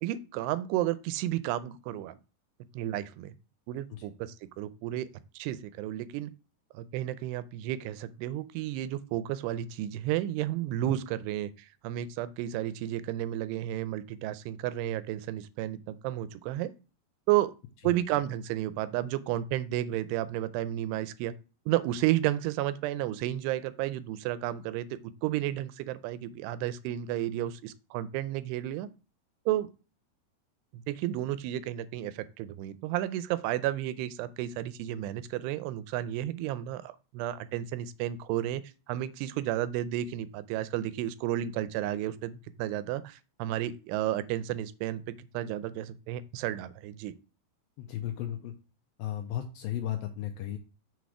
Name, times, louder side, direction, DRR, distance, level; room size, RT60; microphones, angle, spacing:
voice 1, 0.0-2.2 2.7-3.3 3.7-5.1 5.4-6.3 6.7-16.7 17.3-17.5 17.8-21.3 21.7-28.9 29.5-29.7 30.7-38.6 38.9-42.3 42.6-47.1, right 13 dB, 85° right, 14 dB, 2.6 m, -32 dB
voice 2, 47.8-48.5 49.0-50.6, left 11 dB, 85° left, 6 dB, 2.1 m, -35 dB
6.3 x 4.1 x 4.6 m, 0.33 s
omnidirectional pair, 4.7 m